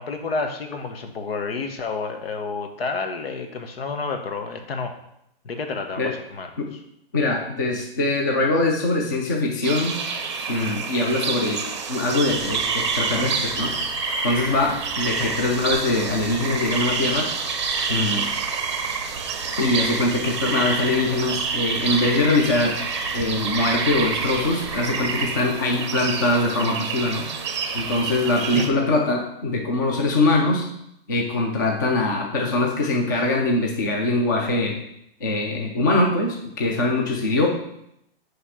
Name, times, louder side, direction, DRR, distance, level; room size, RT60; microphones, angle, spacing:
voice 1, 0.0-4.9 5.4-6.5 15.2-15.4 28.5-28.9, left 4 dB, 80° left, 5 dB, 1.4 m, -30 dB
voice 2, 7.1-10.0 10.5-13.7 14.2-17.3 17.9-18.3 19.6-22.8 23.1-27.3 27.7-30.7 31.1-34.8 35.2-37.5, left 2 dB, 20° left, 1 dB, 0.5 m, -22 dB
sound 1, 9.6-28.7, right 5 dB, 30° right, 0.7 m, -27 dB
9.7 x 3.4 x 5.7 m, 0.78 s
hypercardioid pair, 180°, 30 cm